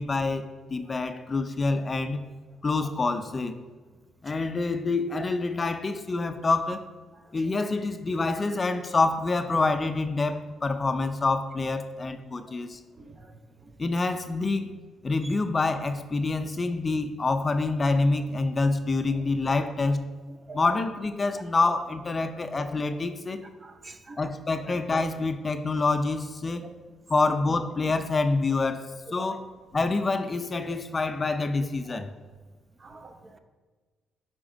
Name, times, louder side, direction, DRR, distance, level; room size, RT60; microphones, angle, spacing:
voice 1, 0.0-2.2 2.6-3.6 4.2-6.8 7.3-12.8 13.8-14.7 15.0-20.0 20.5-23.5 24.2-26.7 27.1-29.5 29.7-32.1, left 3 dB, 30° left, 9 dB, 0.5 m, -27 dB
voice 2, 13.0-13.3 13.6-13.7 15.2-15.3 20.3-20.6 23.6-24.2 24.6-24.7 26.5-26.7 29.1-29.4 31.9-32.1 32.8-33.4, right 3 dB, 30° right, 7 dB, 0.8 m, -45 dB
8.7 x 4.4 x 5.1 m, 1.4 s
cardioid pair, 90°, 0 cm